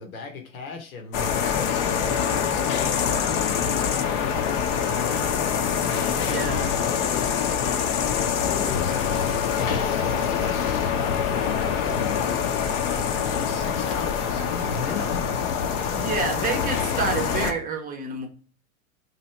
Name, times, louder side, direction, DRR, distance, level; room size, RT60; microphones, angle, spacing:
voice 1, 0.0-4.5 4.7-5.5 5.8-7.8 8.0-15.4, left 4 dB, 80° left, 1.0 m, -38 dB
sound 1, 1.1-17.5, left 7 dB, 40° left, 0.6 m, -25 dB
voice 2, 6.3-6.7 15.9-18.3, right 5 dB, 20° right, 0.7 m, -28 dB
2.9 x 2.7 x 4.2 m
hypercardioid pair, 110°, 41 cm